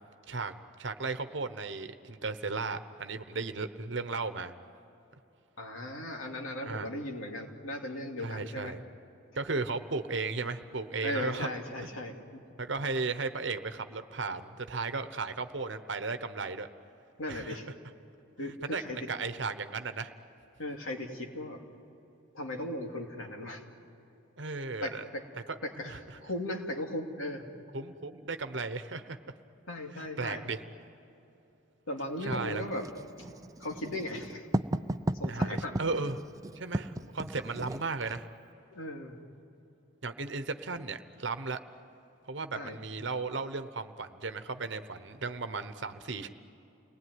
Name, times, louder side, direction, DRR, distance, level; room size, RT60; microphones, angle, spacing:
voice 1, 0.3-4.5 6.7-6.9 8.2-8.8 9.3-11.5 12.6-16.7 17.3-17.6 18.4-18.8 19.1-20.1 24.4-25.0 25.5-26.0 27.7-29.2 29.9-30.6 32.3-32.6 35.3-36.2 36.5-38.3 40.0-41.6 42.3-46.3, right 4 dB, 60° right, 9 dB, 1.0 m, -35 dB
voice 2, 5.6-8.8 11.0-12.4 17.2-17.7 18.4-19.0 20.6-21.6 22.3-23.6 24.8-25.2 25.6-27.5 29.7-30.5 31.9-32.9 33.6-34.5 35.2-35.8 38.7-39.2 42.5-42.8, left 1 dB, 85° left, 2 dB, 2.8 m, -37 dB
Writing, 32.3-38.3, right 1 dB, 15° right, 0.5 m, -35 dB
29.5 x 20.0 x 9.6 m, 2.9 s
head